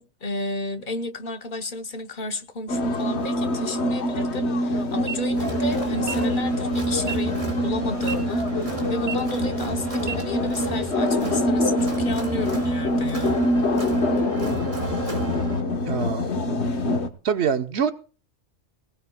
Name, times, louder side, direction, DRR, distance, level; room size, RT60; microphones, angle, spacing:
voice 1, 0.0-13.4, left 2 dB, 50° left, 1.0 m, -32 dB
sound 1, 2.7-17.1, left 1 dB, 70° left, 1.4 m, -25 dB
sound 2, 4.9-5.2 5.9-6.1 6.9-7.2 7.9-8.1 8.9-9.2 9.9-10.1, right 8 dB, 50° right, 0.9 m, -32 dB
Crowd, 5.4-15.6, right 2 dB, 30° right, 2.0 m, -34 dB
voice 2, 15.8-16.2 17.2-17.9, right 7 dB, 70° right, 1.1 m, -24 dB
19.0 x 17.5 x 2.2 m
omnidirectional pair, 1.2 m